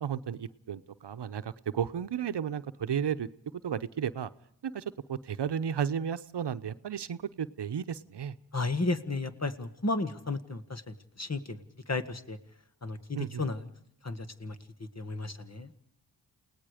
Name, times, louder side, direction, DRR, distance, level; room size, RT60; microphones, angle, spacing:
voice 1, 0.0-3.3 3.6-4.3 4.6-8.3 13.1-13.4, right 8 dB, 70° right, 13 dB, 0.9 m, -33 dB
voice 2, 8.5-12.4 12.8-13.7 14.0-15.7, left 3 dB, 35° left, 9 dB, 1.9 m, -34 dB
29.0 x 18.5 x 5.1 m, 0.69 s
cardioid pair, 55°, 43 cm